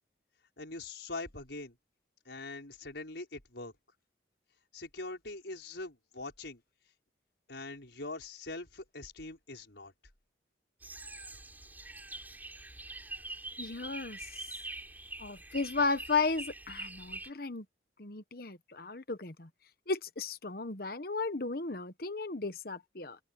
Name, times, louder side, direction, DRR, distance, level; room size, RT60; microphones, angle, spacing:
voice 1, 0.6-1.8 2.3-3.7 4.7-6.6 7.5-9.9, left 2 dB, 70° left, 5.3 m, -43 dB
sound 1, 10.8-17.3, right 2 dB, 10° right, 5.2 m, -44 dB
voice 2, 13.6-14.4 15.2-17.6 18.0-19.5 19.9-23.2, left 3 dB, 55° left, 1.2 m, -34 dB
open air
head